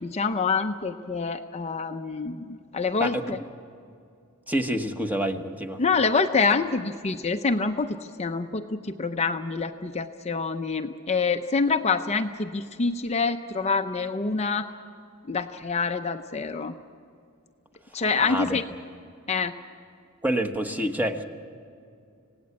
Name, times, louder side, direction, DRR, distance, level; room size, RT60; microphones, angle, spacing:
voice 1, 0.0-3.4 5.8-14.7 15.3-16.7 17.9-18.6 19.3-19.5, left 4 dB, 30° left, 7 dB, 0.6 m, -26 dB
voice 2, 3.0-3.4 4.5-5.8 18.2-18.6 20.2-21.2, right 1 dB, 10° right, 6 dB, 1.1 m, -27 dB
27.0 x 17.5 x 8.5 m, 2.4 s
head